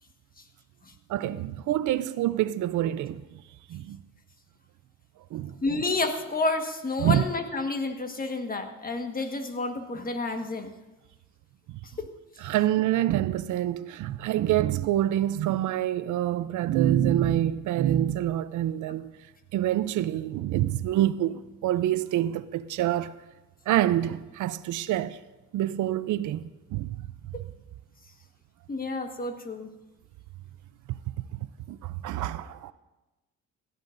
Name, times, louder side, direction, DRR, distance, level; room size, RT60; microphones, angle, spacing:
voice 1, 1.1-3.2 3.7-4.0 5.3-5.5 7.0-7.2 11.7-11.8 12.4-19.1 19.5-23.1 23.7-25.2 25.5-26.4 26.7-27.1 30.9-32.7, right 12 dB, 75° right, 0.5 m, -26 dB
voice 2, 5.6-10.7 11.9-12.1 27.3-27.4 28.7-29.7, left 3 dB, 30° left, 1.5 m, -30 dB
18.0 x 13.5 x 2.6 m
cardioid pair, 90°, 30 cm